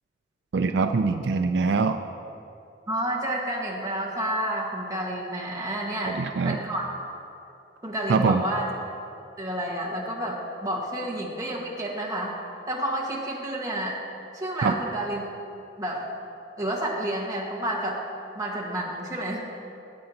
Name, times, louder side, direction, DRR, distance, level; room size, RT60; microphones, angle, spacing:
voice 1, 0.5-2.0 6.1-6.6 8.1-8.4 14.6-14.7, right 4 dB, 70° right, 7 dB, 0.4 m, -23 dB
voice 2, 2.9-6.2 6.4-6.9 7.8-8.7 9.4-12.3 12.7-14.0 14.3-15.2 15.8-16.1 16.6-18.0 18.3-19.4, right 1 dB, 20° right, -3 dB, 1.6 m, -30 dB
18.5 x 8.6 x 2.9 m, 2.7 s
head